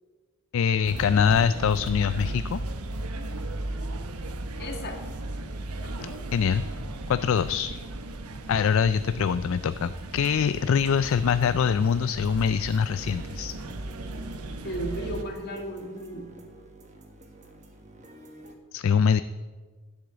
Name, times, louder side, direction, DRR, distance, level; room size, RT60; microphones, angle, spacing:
voice 1, 0.5-2.6 6.0-6.6 7.1-7.7 8.5-13.5 18.7-19.2, left 7 dB, 65° left, 13 dB, 0.3 m, -24 dB
sound 1, 0.8-15.2, right 2 dB, 85° right, 1.0 m, -36 dB
voice 2, 4.6-5.0 5.8-6.3 14.6-16.3, right 1 dB, 45° left, 3 dB, 1.9 m, -35 dB
sound 2, 12.2-18.6, right 2 dB, 30° right, 1.4 m, -50 dB
11.0 x 8.0 x 8.0 m, 1.4 s
head